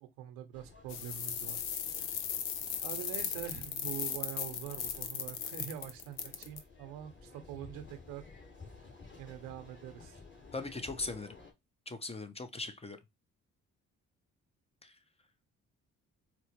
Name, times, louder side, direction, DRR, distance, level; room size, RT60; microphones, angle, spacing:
voice 1, 0.0-1.6 2.0-2.2 2.8-8.2 9.2-10.2, right 11 dB, 80° right, 0.7 m, -44 dB
sound 1, 0.5-11.5, left 4 dB, 35° left, 1.8 m, -54 dB
sound 2, 0.9-6.6, left 8 dB, 90° left, 0.5 m, -37 dB
voice 2, 10.5-11.4 11.9-13.0 14.8-15.0, left 3 dB, 20° left, 0.6 m, -39 dB
4.3 x 2.0 x 2.9 m
hypercardioid pair, 50°, 33 cm